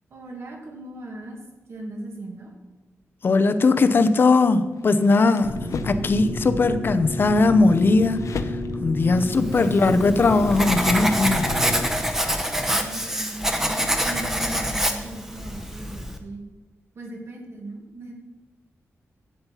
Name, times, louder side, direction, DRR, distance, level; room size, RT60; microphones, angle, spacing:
voice 1, 0.1-1.4 1.7-2.5 12.7-16.4 16.9-18.1, right 1 dB, 55° right, 1 dB, 2.3 m, -38 dB
voice 2, 3.2-5.6 5.8-8.5 8.8-11.5, left 3 dB, 45° left, 10 dB, 0.7 m, -19 dB
sound 1, 4.7-6.2 6.9-9.1, left 6 dB, 85° left, 0.7 m, -37 dB
sound 2, 5.4-11.8, left 1 dB, 30° right, 3.9 m, -30 dB
Writing, 9.5-16.2, equal, 10° right, 1.0 m, -26 dB
12.0 x 8.8 x 5.7 m, 1.1 s
wide cardioid pair, 170°, 5 cm